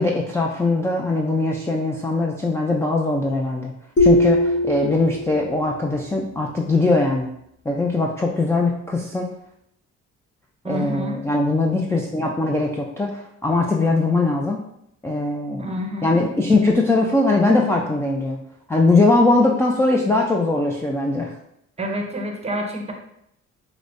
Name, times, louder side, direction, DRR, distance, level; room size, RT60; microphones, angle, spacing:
voice 1, 0.0-3.7 4.0-7.4 7.7-9.3 10.7-14.6 15.0-15.7 16.0-18.4 18.7-21.3, left 2 dB, 10° left, -1 dB, 0.3 m, -20 dB
sound 1, 4.0-5.7, equal, 40° left, 0.8 m, -20 dB
voice 2, 10.6-11.2 15.6-16.1 21.8-22.9, equal, 20° right, 2 dB, 0.7 m, -28 dB
4.9 x 2.1 x 2.5 m, 0.76 s
cardioid pair, 90°, 30 cm